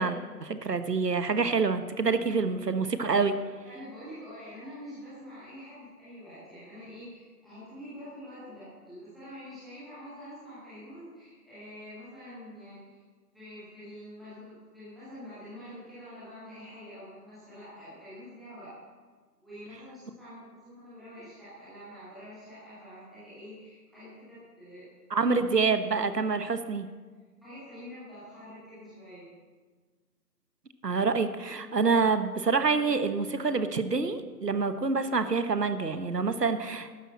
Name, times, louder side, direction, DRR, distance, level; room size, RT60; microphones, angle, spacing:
voice 1, 0.0-3.4 25.1-26.9 30.8-36.9, right 4 dB, 75° right, 10 dB, 1.2 m, -27 dB
voice 2, 3.6-13.0 13.3-18.7 19.4-24.9 27.4-29.3, equal, ahead, -14 dB, 1.2 m, -46 dB
12.0 x 10.5 x 7.4 m, 1.5 s
figure-of-eight pair, 180°, 49 cm